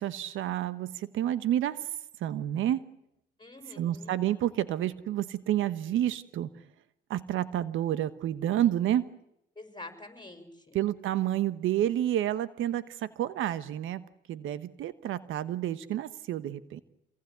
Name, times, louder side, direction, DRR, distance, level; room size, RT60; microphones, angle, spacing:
voice 1, 0.0-1.9 2.2-2.8 3.8-6.5 7.1-9.1 10.7-16.8, right 12 dB, 85° right, 14 dB, 1.2 m, -29 dB
voice 2, 3.4-4.2 9.6-10.8, left 2 dB, 25° left, 7 dB, 5.8 m, -47 dB
27.0 x 19.0 x 9.5 m, 0.79 s
cardioid pair, 90°, 20 cm